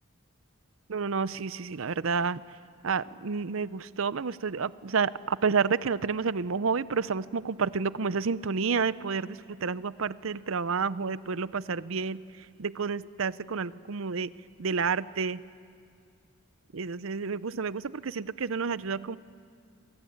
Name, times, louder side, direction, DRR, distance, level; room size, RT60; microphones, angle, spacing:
voice 1, 0.9-2.4 2.8-12.2 12.6-14.3 14.6-15.4 16.7-19.2, right 5 dB, 65° right, 17 dB, 0.6 m, -30 dB
28.0 x 23.5 x 8.7 m, 2.3 s
head